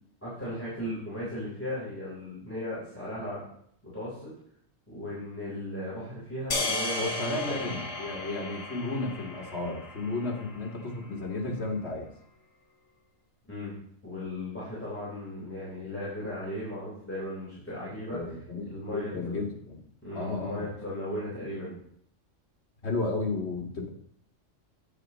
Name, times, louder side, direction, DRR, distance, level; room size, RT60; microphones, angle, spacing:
voice 1, 0.2-3.4 3.8-4.3 4.9-7.7 13.5-13.8 14.0-18.4 18.7-19.4 20.0-21.7, left 1 dB, 10° left, -9 dB, 3.8 m, -36 dB
sound 1, 6.5-10.9, left 2 dB, 80° left, 1.8 m, -35 dB
voice 2, 7.0-12.1 18.1-19.8 20.1-20.7 22.8-23.9, left 3 dB, 55° left, -1 dB, 2.0 m, -33 dB
9.6 x 8.8 x 3.0 m, 0.67 s
omnidirectional pair, 1.3 m